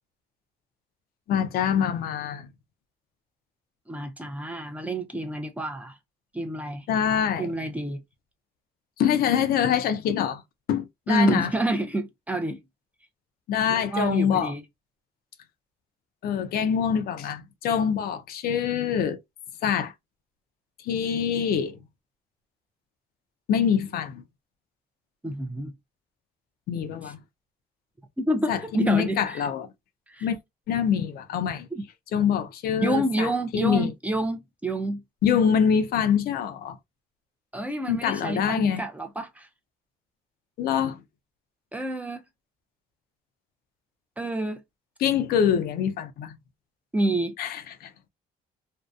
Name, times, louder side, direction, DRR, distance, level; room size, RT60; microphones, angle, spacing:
voice 1, 1.3-2.5 6.9-7.5 9.0-10.4 10.7-11.5 13.5-14.5 16.2-19.2 19.6-19.9 20.8-21.8 23.5-24.2 26.7-27.2 28.5-29.7 30.2-30.4 30.7-31.7 32.1-33.9 35.2-36.8 37.9-38.8 40.6-41.0 45.0-46.4 47.4-47.9, left 8 dB, 65° left, 0.5 m, -25 dB
voice 2, 3.9-5.9 6.3-6.9 7.4-8.0 11.1-12.6 13.7-14.6 25.2-25.7 28.2-29.4 30.1-30.3 31.7-31.8 32.8-35.0 37.5-39.5 41.7-42.2 44.2-44.6 46.9-47.4, right 1 dB, 10° right, 0.4 m, -28 dB
2.6 x 2.1 x 2.3 m
cardioid pair, 110°, 17 cm